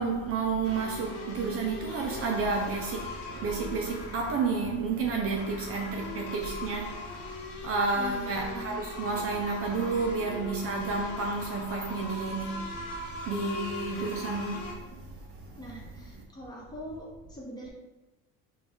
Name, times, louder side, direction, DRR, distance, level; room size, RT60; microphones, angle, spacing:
voice 1, 0.0-7.1 7.6-12.7 13.3-14.8, right 4 dB, 45° right, 0.5 m, -30 dB
sound 1, 0.6-14.7, left 3 dB, 70° left, 1.0 m, -41 dB
voice 2, 7.9-8.9 15.6-17.7, equal, 10° left, 1.0 m, -42 dB
3.9 x 2.3 x 3.7 m
cardioid pair, 130°, 33 cm